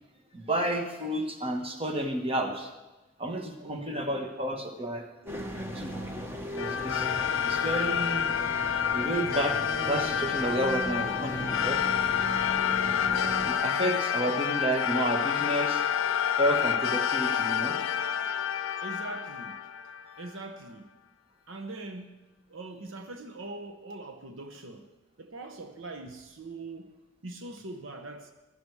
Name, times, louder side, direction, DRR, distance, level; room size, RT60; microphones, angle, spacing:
voice 1, 0.3-2.7 3.2-5.0 5.7-5.9 6.6-7.1 7.4-8.4 8.9-9.6 9.9-11.8 13.2-15.8 16.4-17.8, right 1 dB, 25° right, 1.4 m, -31 dB
voice 2, 3.6-4.2 5.2-5.3 14.3-14.4 18.8-20.9 21.5-22.2 22.5-24.9 25.2-26.9 27.2-28.3, right 2 dB, 70° right, 1.0 m, -42 dB
sound 1, 5.2-13.5, equal, 10° right, 1.1 m, -37 dB
sound 2, 6.6-20.3, left 8 dB, 65° left, 0.5 m, -29 dB
sound 3, 10.9-19.5, left 5 dB, 30° left, 0.7 m, -42 dB
16.0 x 12.5 x 4.8 m
head